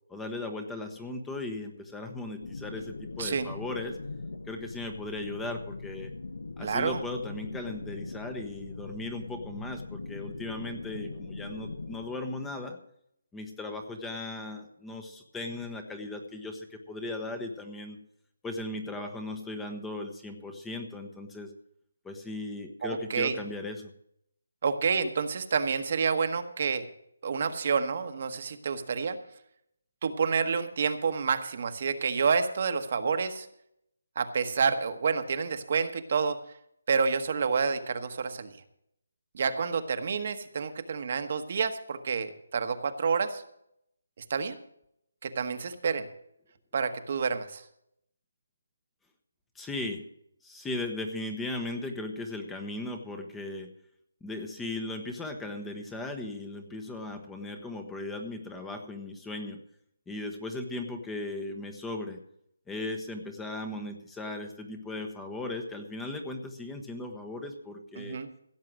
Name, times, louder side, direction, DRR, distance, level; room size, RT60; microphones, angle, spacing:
voice 1, 0.1-4.0 4.5-6.1 6.6-12.8 13.3-18.0 18.4-21.5 22.0-23.9 49.5-50.0 50.4-53.7 54.2-59.6 60.1-62.2 62.7-68.2, left 2 dB, 5° left, 5 dB, 1.0 m, -37 dB
sound 1, 2.4-12.1, left 3 dB, 75° left, 1.4 m, -41 dB
voice 2, 6.6-7.0 22.8-23.4 24.6-26.8 27.2-29.2 30.0-33.5 34.2-36.4 36.9-38.6 39.3-43.4 44.3-44.6 45.2-46.1 46.7-47.6 68.0-68.3, right 5 dB, 45° right, 8 dB, 1.2 m, -29 dB
16.0 x 7.5 x 6.2 m, 0.73 s
hypercardioid pair, 165°, 0 cm